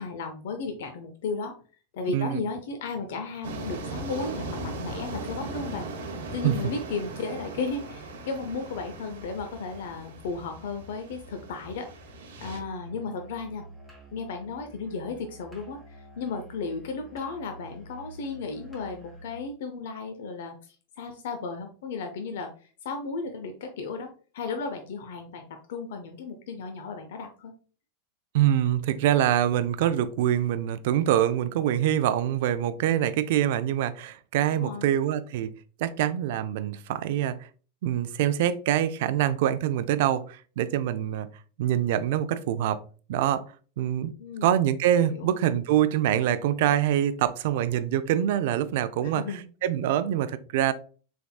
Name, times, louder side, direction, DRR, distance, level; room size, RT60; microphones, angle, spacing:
voice 1, 0.0-1.6 1.9-11.9 12.4-13.6 14.1-27.5 34.6-34.9 44.2-44.6 45.1-45.3 49.0-49.4, left 4 dB, 75° left, 0.5 m, -35 dB
sound 1, 3.4-12.6, right 2 dB, 85° right, 0.8 m, -38 dB
Musical instrument, 12.4-19.5, right 1 dB, 10° left, 1.2 m, -48 dB
voice 2, 28.3-35.5 35.8-37.5 37.8-41.3 41.6-42.8 43.1-43.4 43.8-49.2 49.6-50.7, right 11 dB, 65° right, 0.3 m, -25 dB
3.5 x 3.4 x 2.3 m
supercardioid pair, 130°, 0 cm